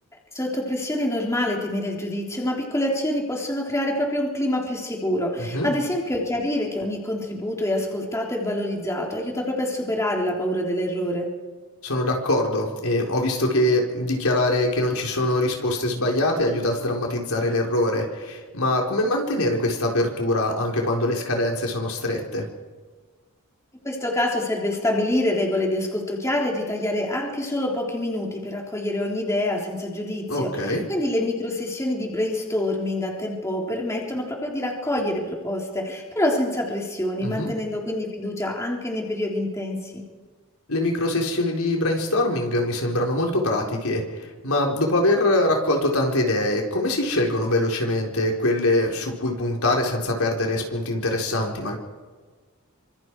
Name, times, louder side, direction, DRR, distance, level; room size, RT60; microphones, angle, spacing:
voice 1, 0.3-11.3 23.8-40.0, left 1 dB, 15° left, -1 dB, 3.6 m, -26 dB
voice 2, 5.4-5.7 11.8-22.5 30.3-30.8 37.2-37.5 40.7-51.8, left 1 dB, 75° left, 1 dB, 4.3 m, -23 dB
27.5 x 26.0 x 4.8 m, 1.4 s
head